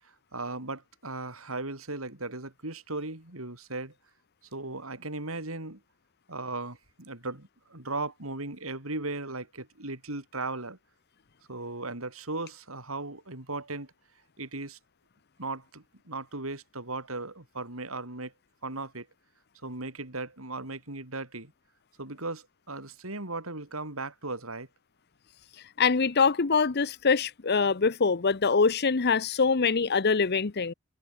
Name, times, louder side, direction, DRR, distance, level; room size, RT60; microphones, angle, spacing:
voice 1, 0.3-3.9 4.5-5.8 6.3-10.8 11.5-13.9 14.4-14.8 15.4-18.3 18.6-19.1 19.6-21.5 22.0-24.7, right 2 dB, 85° right, 5.3 m, -37 dB
voice 2, 25.8-30.7, left 5 dB, 50° left, 0.8 m, -24 dB
head